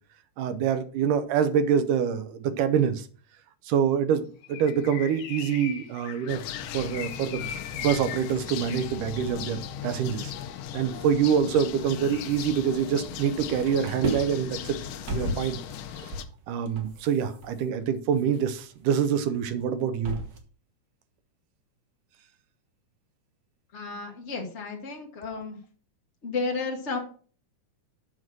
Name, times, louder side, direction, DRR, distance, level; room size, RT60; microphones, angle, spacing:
voice 1, 0.4-3.1 3.7-6.4 6.7-10.3 10.7-14.8 15.1-15.6 15.9-16.1 16.5-20.2, right 7 dB, 85° right, 2.4 m, -26 dB
Bird, 4.4-9.3, left 10 dB, 70° left, 1.5 m, -40 dB
sound 1, 6.3-16.2, left 9 dB, 90° left, 2.3 m, -38 dB
sound 2, 11.6-13.2 13.4-20.4, right 1 dB, 60° right, 0.9 m, -37 dB
voice 2, 23.7-25.6 26.2-27.0, left 4 dB, 55° left, 0.7 m, -32 dB
7.6 x 6.1 x 6.0 m
omnidirectional pair, 3.6 m